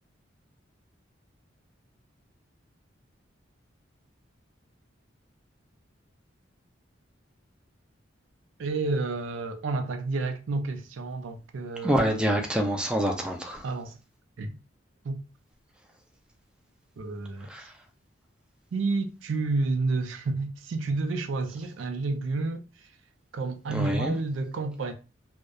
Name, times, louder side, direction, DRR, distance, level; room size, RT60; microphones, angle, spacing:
voice 1, 8.6-12.2 13.6-14.0 14.4-14.6 15.0-15.2 17.0-17.5 18.7-22.6 23.3-24.9, right 3 dB, 80° right, 0.4 m, -30 dB
voice 2, 11.8-13.6 17.5-17.6 23.7-24.2, equal, 5° right, 0.3 m, -26 dB
2.7 x 2.0 x 2.3 m
head